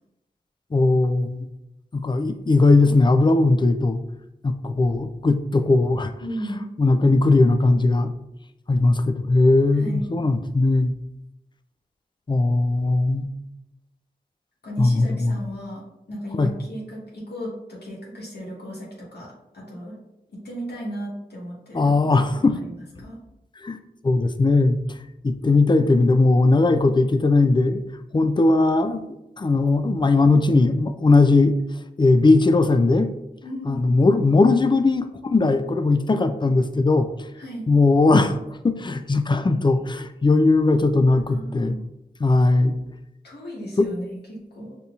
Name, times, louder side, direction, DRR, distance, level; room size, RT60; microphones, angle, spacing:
voice 1, 0.7-1.5 1.9-4.0 4.4-6.1 6.8-8.1 8.7-10.9 12.3-13.3 14.8-15.4 16.4-16.5 21.7-22.6 23.6-23.8 24.0-24.8 25.2-27.8 28.1-29.1 29.4-31.5 32.0-33.1 33.7-37.1 37.7-38.4 38.6-41.8 42.2-42.8 43.8-43.9, left 3 dB, 30° left, 9 dB, 0.4 m, -19 dB
voice 2, 6.2-6.7 9.7-10.1 14.6-20.0 20.3-22.1 22.5-22.7 23.0-23.2 33.4-33.8 37.4-37.7 41.2-41.8 43.2-44.8, equal, 80° left, -6 dB, 1.2 m, -35 dB
5.2 x 2.8 x 2.4 m, 0.90 s
wide cardioid pair, 55°, 17 cm